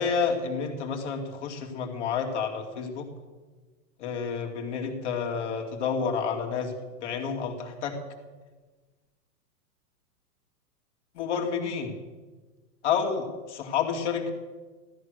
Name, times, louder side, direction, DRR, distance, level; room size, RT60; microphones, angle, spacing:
voice 1, 0.0-3.1 4.0-6.7 7.0-7.9 11.1-11.9 12.8-14.3, left 6 dB, 45° left, 2 dB, 2.8 m, -29 dB
16.0 x 13.5 x 6.7 m, 1.3 s
hypercardioid pair, 170°, 48 cm